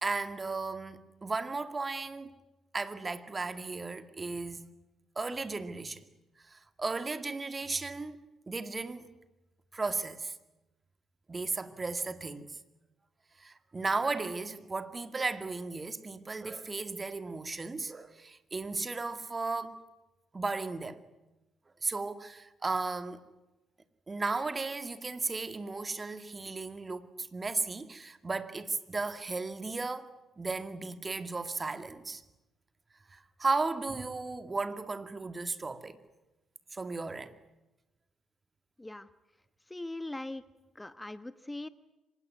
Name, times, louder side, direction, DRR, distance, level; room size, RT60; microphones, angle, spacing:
voice 1, 0.0-2.3 2.7-4.7 5.2-6.1 6.5-8.2 8.5-9.1 9.7-10.3 11.3-12.6 13.4-19.8 20.3-21.0 21.8-23.2 24.1-30.1 30.4-32.2 33.1-36.0 36.7-37.4, right 3 dB, 30° right, 2.1 m, -35 dB
voice 2, 38.8-39.1 39.7-40.4 40.7-41.7, left 2 dB, 15° left, 1.1 m, -40 dB
25.0 x 20.5 x 9.6 m
hypercardioid pair, 45°, 0 cm